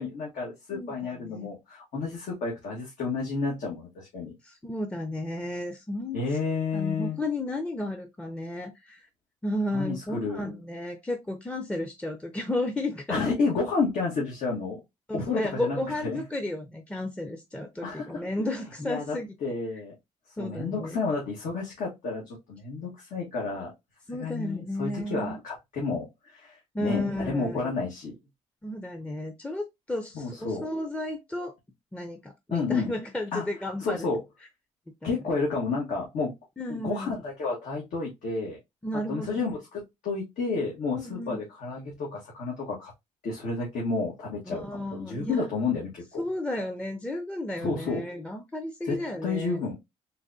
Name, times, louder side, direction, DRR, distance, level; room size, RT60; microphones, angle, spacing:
voice 1, 0.0-4.3 6.1-7.2 9.7-10.4 13.1-14.8 15.1-16.2 17.8-18.2 18.8-19.9 20.4-23.7 24.1-28.1 30.1-30.6 32.5-32.9 33.3-33.4 33.8-34.2 35.0-36.3 36.7-38.6 39.1-42.9 43.2-46.2 47.6-48.0 48.8-49.8, left 4 dB, 80° left, 1.4 m, -31 dB
voice 2, 0.7-1.5 4.4-6.4 6.7-9.1 9.4-13.2 15.1-19.6 20.4-21.0 24.1-25.4 26.7-27.7 28.6-31.6 31.9-34.1 35.0-35.2 36.6-37.2 38.8-39.4 40.9-41.4 44.5-45.5 46.2-49.6, left 1 dB, 10° left, 0.5 m, -33 dB
3.9 x 2.9 x 2.6 m
cardioid pair, 80°, 14 cm